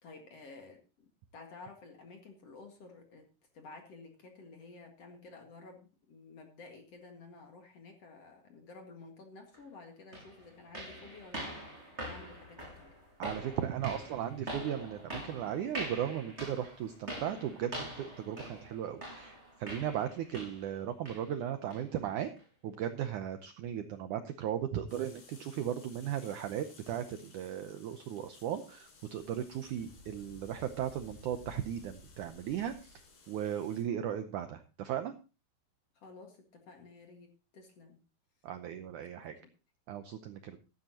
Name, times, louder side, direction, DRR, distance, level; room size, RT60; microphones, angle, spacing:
voice 1, 0.0-3.3 3.5-11.6 12.0-12.9 35.9-38.0 39.1-39.5, left 3 dB, 50° left, 3 dB, 2.4 m, -52 dB
sound 1, 9.5-9.6 10.1-20.8 21.1-21.3 21.7-21.9 22.4-22.5 23.0-23.1, equal, 15° right, 6.4 m, -44 dB
voice 2, 13.2-22.3 22.6-33.0 33.3-35.1 38.4-39.3 39.9-40.6, right 10 dB, 80° right, 8 dB, 1.8 m, -36 dB
sound 2, 24.9-33.8, left 3 dB, 85° left, 5.7 m, -56 dB
15.5 x 12.5 x 2.9 m, 0.32 s
omnidirectional pair, 4.6 m